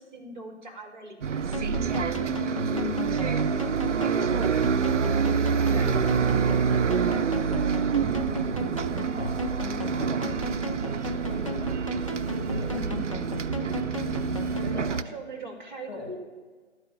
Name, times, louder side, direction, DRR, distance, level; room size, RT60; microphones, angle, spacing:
voice 1, 0.0-1.5 5.7-6.7 12.7-13.4 14.6-16.2, right 1 dB, 40° right, 3 dB, 1.9 m, -41 dB
Bus, 1.2-15.0, right 6 dB, 80° right, 0.6 m, -27 dB
sound 1, 1.5-14.8, left 1 dB, 30° left, 0.4 m, -35 dB
voice 2, 2.2-6.4 6.7-7.7 8.4-11.7 12.2-13.0 14.5-15.0 15.9-16.1, left 4 dB, 10° left, -9 dB, 1.1 m, -41 dB
sound 2, 8.8-14.6, right 3 dB, 20° right, 3.1 m, -56 dB
11.5 x 4.8 x 8.2 m, 1.4 s
figure-of-eight pair, 160°, 36 cm